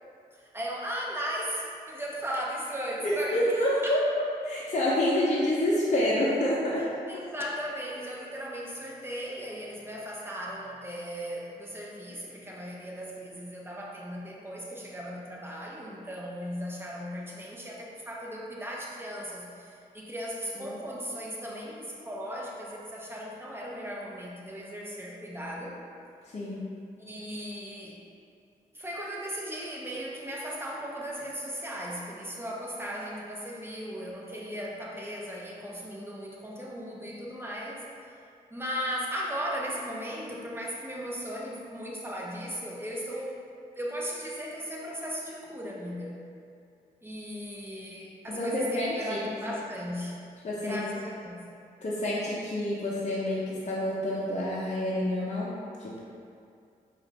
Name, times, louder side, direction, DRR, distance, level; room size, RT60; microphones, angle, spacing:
voice 1, 0.3-4.0 7.1-25.7 27.0-28.0 28.7-37.9 38.1-38.2 38.5-43.3 43.7-46.2 47.0-50.2 50.6-51.4, equal, 15° right, -4 dB, 0.9 m, -37 dB
voice 2, 3.0-7.2 20.6-20.7 26.3-26.7 48.3-49.2 49.5-49.6 50.4-50.8 51.8-55.5 55.8-56.0, left 1 dB, 40° left, -7 dB, 0.8 m, -28 dB
4.8 x 2.6 x 3.2 m, 2.4 s
supercardioid pair, 40°, 18 cm